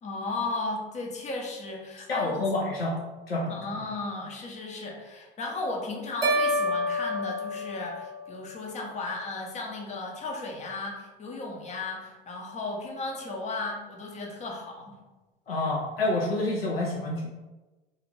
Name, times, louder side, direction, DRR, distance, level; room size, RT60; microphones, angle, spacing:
voice 1, 0.0-2.5 3.5-15.0, left 3 dB, 25° left, 0 dB, 0.6 m, -35 dB
voice 2, 2.1-3.0 3.3-3.5 15.5-17.3, left 2 dB, 85° left, -4 dB, 0.5 m, -28 dB
sound 1, 6.2-8.5, equal, 85° right, 0.7 m, -28 dB
2.5 x 2.4 x 3.1 m, 1.2 s
figure-of-eight pair, 75°, 29 cm